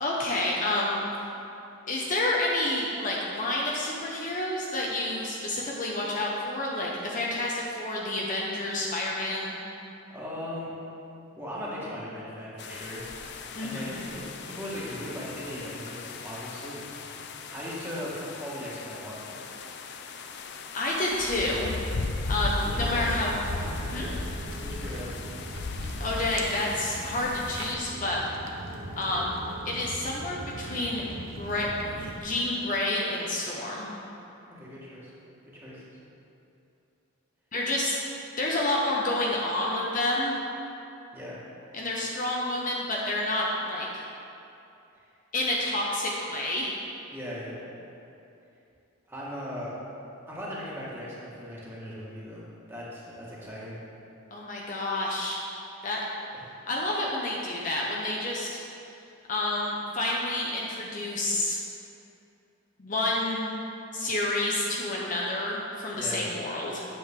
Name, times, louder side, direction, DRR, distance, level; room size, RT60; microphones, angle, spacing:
voice 1, 0.0-1.0 1.9-9.6 13.5-14.0 20.7-21.7 22.3-23.3 23.9-24.1 26.0-28.2 29.0-29.4 29.6-31.7 32.0-33.9 37.5-38.0 38.4-40.4 41.7-43.9 45.3-46.7 54.3-55.4 55.8-56.0 56.7-58.6 59.3-61.6 62.8-63.6 63.9-66.8, left 1 dB, 35° left, -3 dB, 0.8 m, -29 dB
voice 2, 10.1-10.7 11.3-13.1 13.6-16.8 17.5-19.4 22.6-23.3 24.6-25.4 34.6-35.1 35.5-36.0 41.1-41.4 47.1-47.6 49.1-49.7 50.3-52.4 52.7-53.8 56.3-56.4 65.9-66.2, equal, 10° right, -8 dB, 1.7 m, -38 dB
sound 1, 12.6-27.7, left 3 dB, 55° left, 0.5 m, -37 dB
Walk footsteps, 22.3-32.2, right 2 dB, 70° right, 0.8 m, -40 dB
9.4 x 7.7 x 3.7 m, 2.8 s
head